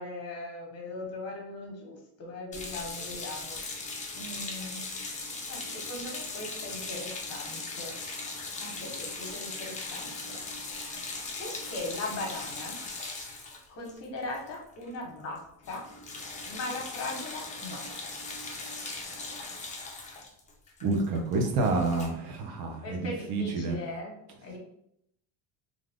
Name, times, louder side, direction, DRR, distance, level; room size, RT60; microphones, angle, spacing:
voice 1, 0.0-3.6 4.1-4.8 5.5-8.0 8.4-10.8 11.4-12.8 13.7-15.8 16.5-17.8 22.8-24.6, left 2 dB, 40° left, 0 dB, 1.0 m, -39 dB
sound 1, 2.5-14.9 15.2-15.4 15.6-22.1, left 3 dB, 20° left, 0.4 m, -39 dB
voice 2, 20.8-23.8, right 3 dB, 65° right, 3 dB, 0.7 m, -28 dB
2.5 x 2.4 x 3.4 m, 0.74 s
cardioid pair, 125°, 38 cm